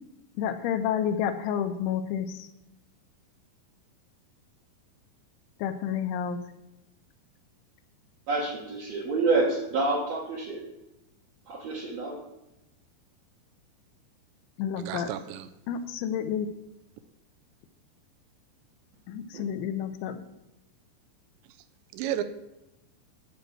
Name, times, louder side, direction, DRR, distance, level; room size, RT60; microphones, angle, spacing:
voice 1, 0.4-2.5 5.6-6.4 14.6-15.1 15.7-16.5 19.1-20.2, left 8 dB, 85° left, 3.2 m, -30 dB
voice 2, 8.3-10.6 11.5-12.2 19.3-19.4, right 3 dB, 65° right, 1.8 m, -28 dB
voice 3, 14.8-15.5 21.9-22.2, right 11 dB, 80° right, 2.8 m, -32 dB
12.0 x 4.6 x 7.7 m
omnidirectional pair, 5.3 m